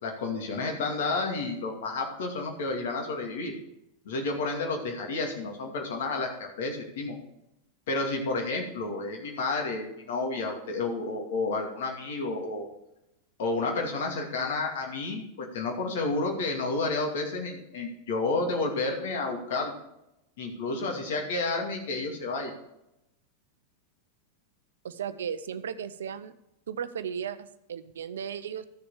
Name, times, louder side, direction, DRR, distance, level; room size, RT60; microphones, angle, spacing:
voice 1, 0.0-3.5 4.0-7.1 7.9-12.7 13.4-19.7 20.4-22.5, left 3 dB, 55° left, 2 dB, 2.5 m, -31 dB
voice 2, 24.8-26.3 26.7-28.7, right 8 dB, 65° right, 13 dB, 0.6 m, -35 dB
13.0 x 6.9 x 4.9 m, 0.87 s
figure-of-eight pair, 90°, 0 cm